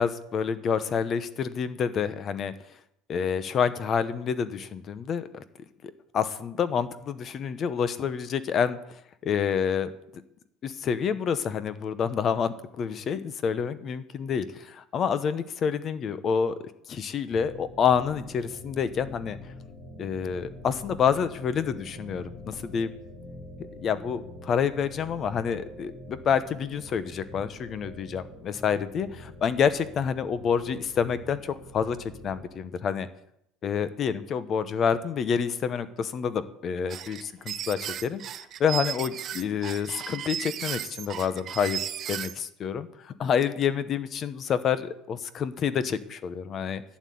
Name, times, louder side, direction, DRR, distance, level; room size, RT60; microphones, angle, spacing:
voice 1, 0.0-2.5 3.1-5.4 5.8-8.8 9.2-9.9 10.6-16.6 16.9-19.4 20.0-22.9 23.8-33.1 33.6-38.2 38.6-41.8 42.1-46.8, left 7 dB, 30° left, 14 dB, 0.9 m, -28 dB
sound 1, 17.3-32.5, left 1 dB, 85° left, 6.4 m, -45 dB
sound 2, 36.9-42.4, right 10 dB, 30° right, 0.5 m, -35 dB
11.5 x 9.5 x 8.5 m, 0.77 s
cardioid pair, 165°, 0 cm